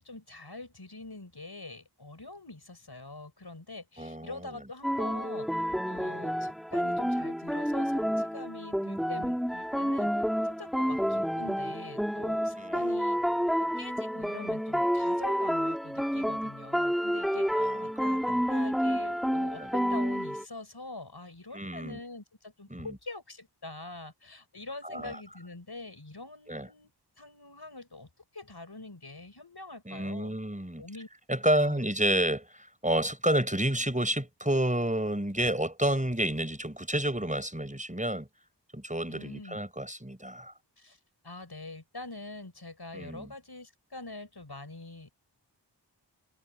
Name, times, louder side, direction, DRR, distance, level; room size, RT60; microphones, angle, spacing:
voice 1, 0.0-5.5 5.8-10.1 10.4-13.2 13.6-26.9 27.2-30.4 30.8-31.1 31.5-31.8 39.1-39.6 40.8-41.0 41.2-45.1, left 2 dB, 65° left, 6.1 m, -44 dB
voice 2, 4.0-4.4 12.5-12.9 17.6-17.7 18.3-18.4 19.5-19.7 21.5-22.0 22.7-22.9 24.8-25.2 26.5-26.7 29.9-30.8 31.3-38.3 38.7-40.5 42.9-43.3, right 1 dB, 20° right, 5.9 m, -30 dB
sound 1, 4.8-20.4, equal, ahead, 4.4 m, -29 dB
wide cardioid pair, 45°, 42 cm